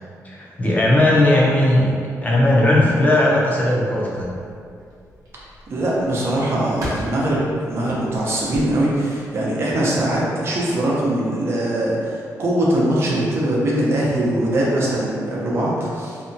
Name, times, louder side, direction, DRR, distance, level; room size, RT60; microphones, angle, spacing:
voice 1, 0.2-1.9 2.2-4.3, left 1 dB, 25° left, -4 dB, 0.5 m, -17 dB
sound 1, 4.1-9.5, equal, 90° right, 0.7 m, -38 dB
voice 2, 5.7-16.2, right 1 dB, 45° right, -6 dB, 0.6 m, -21 dB
2.7 x 2.2 x 2.6 m, 2.3 s
wide cardioid pair, 140°, 6 cm